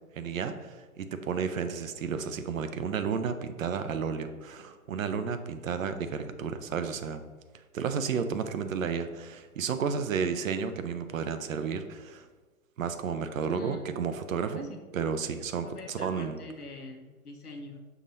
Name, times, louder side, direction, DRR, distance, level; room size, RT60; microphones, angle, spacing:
voice 1, 0.1-7.2 7.7-12.3 12.8-16.4, right 6 dB, 65° right, 9 dB, 0.7 m, -32 dB
voice 2, 13.4-13.9 14.5-14.8 15.6-17.8, left 2 dB, 85° left, 3 dB, 0.9 m, -44 dB
5.9 x 3.0 x 5.4 m, 1.3 s
figure-of-eight pair, 110°, 44 cm